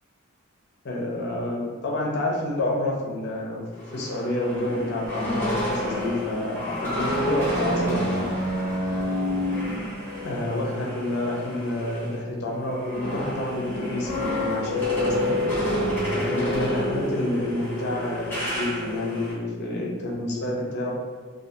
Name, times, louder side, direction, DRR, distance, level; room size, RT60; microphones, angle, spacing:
voice 1, 0.8-3.6 3.9-8.3 10.2-15.4 16.1-20.9, left 1 dB, 50° left, -2 dB, 0.5 m, -29 dB
sound 1, 3.7-12.1 12.5-19.3, left 1 dB, 10° left, 0.8 m, -28 dB
2.3 x 2.3 x 2.7 m, 1.5 s
head